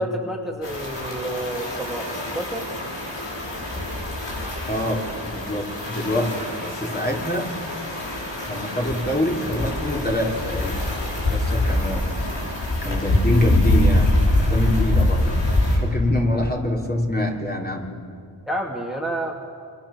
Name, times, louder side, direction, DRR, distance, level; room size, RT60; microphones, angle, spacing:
voice 1, 0.0-2.6 18.5-19.5, right 1 dB, ahead, 0 dB, 2.8 m, -29 dB
sound 1, 0.6-15.8, left 1 dB, 80° left, 6.7 m, -24 dB
voice 2, 4.7-7.5 8.5-10.8 11.3-12.1 12.8-17.9, left 1 dB, 20° left, 0 dB, 4.0 m, -25 dB
30.0 x 25.5 x 7.5 m, 2.4 s
wide cardioid pair, 75°, 43 cm